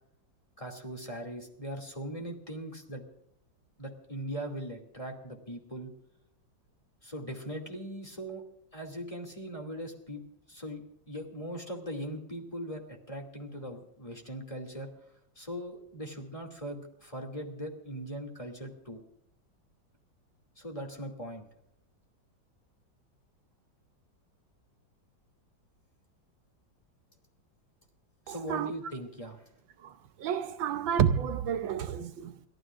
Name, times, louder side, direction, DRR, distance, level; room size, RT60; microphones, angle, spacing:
voice 1, 0.6-3.0 3.8-5.9 7.0-8.4 8.7-10.2 10.5-14.9 15.4-19.0 20.6-21.5 28.3-29.4, equal, 15° left, 2.6 m, -40 dB
voice 2, 28.3-28.7 29.8-32.4, right 8 dB, 80° right, 1.5 m, -30 dB
29.0 x 13.0 x 2.5 m
omnidirectional pair, 2.1 m